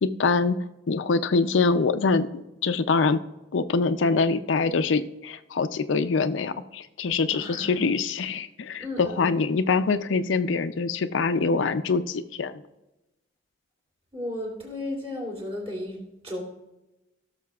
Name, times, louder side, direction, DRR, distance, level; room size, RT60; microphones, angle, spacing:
voice 1, 0.0-0.6 0.9-3.2 3.5-12.6, left 4 dB, 90° left, 10 dB, 0.5 m, -24 dB
voice 2, 7.3-7.8 8.8-9.3 14.1-16.4, left 1 dB, 30° right, -2 dB, 3.2 m, -34 dB
17.0 x 6.5 x 2.4 m, 0.97 s
head